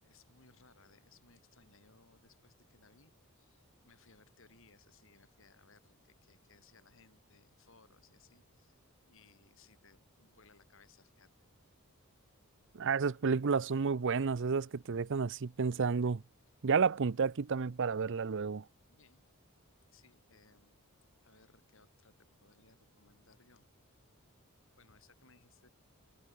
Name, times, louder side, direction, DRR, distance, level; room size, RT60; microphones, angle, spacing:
voice 1, 0.0-8.8 9.1-11.3 18.9-19.2 19.9-20.7 21.2-23.7 24.8-25.7, left 4 dB, 60° left, 5.3 m, -65 dB
voice 2, 12.7-16.2 16.6-18.6, right 5 dB, 55° right, 0.6 m, -31 dB
head